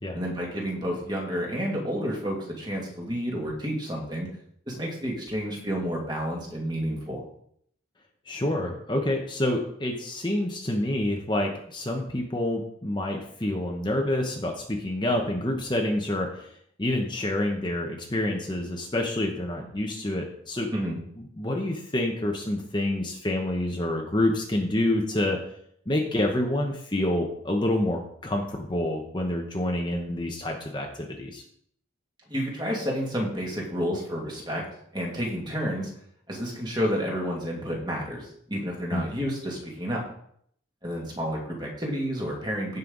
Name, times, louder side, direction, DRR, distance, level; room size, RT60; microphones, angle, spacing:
voice 1, 0.1-4.3 4.7-7.2 20.7-21.0 32.3-34.7 34.9-35.9 36.3-40.0 40.8-42.8, equal, 20° right, -2 dB, 2.3 m, -30 dB
voice 2, 8.3-16.5 16.8-20.7 21.2-25.4 25.9-31.4 38.9-39.1, left 1 dB, 25° left, 1 dB, 1.1 m, -27 dB
15.5 x 5.5 x 4.0 m, 0.67 s
head